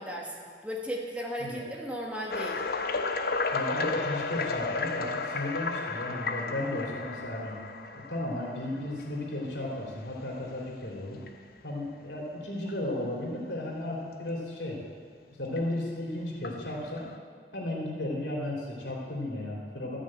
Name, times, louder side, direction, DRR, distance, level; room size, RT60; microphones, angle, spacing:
voice 1, 0.0-2.6, equal, 5° right, -2 dB, 1.5 m, -36 dB
sound 1, 2.3-9.2 9.8-10.0 10.5-10.6 11.2-11.3 12.7-12.8 15.6-15.7 16.4-17.2, left 4 dB, 55° left, 0.7 m, -33 dB
voice 2, 3.5-7.5 7.9-11.2 11.6-14.8 15.4-17.0 17.5-20.0, left 1 dB, 80° left, -2 dB, 3.1 m, -34 dB
13.5 x 6.3 x 8.8 m, 2.2 s
head